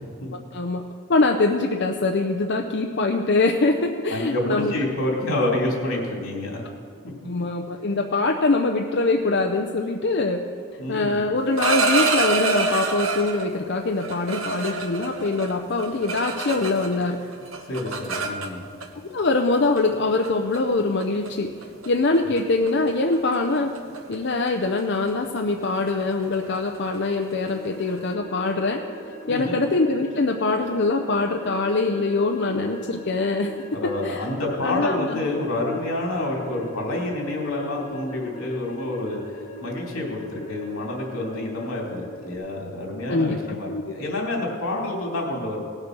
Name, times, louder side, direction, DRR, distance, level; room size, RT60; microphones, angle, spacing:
voice 1, 0.5-0.8 1.1-4.7 7.2-10.4 10.9-17.2 19.1-21.5 21.9-23.7 24.1-28.8 29.3-33.5 34.0-34.3 34.6-35.3 43.1-43.4 43.7-43.8, left 3 dB, 55° left, 3 dB, 0.6 m, -23 dB
voice 2, 4.1-6.6 10.8-11.2 17.7-18.6 29.3-29.6 33.7-39.2 39.6-45.6, left 1 dB, 80° left, -1 dB, 2.9 m, -28 dB
sound 1, 11.4-13.5 14.0-17.1 17.3-18.9 19.8-19.9 20.2-20.6 21.0-21.3 21.6-21.9 22.1-22.4 22.7-28.0, right 4 dB, 70° right, 1.1 m, -27 dB
sound 2, 27.3-42.3, left 2 dB, 35° left, 1.7 m, -40 dB
18.0 x 6.6 x 6.0 m, 2.2 s
head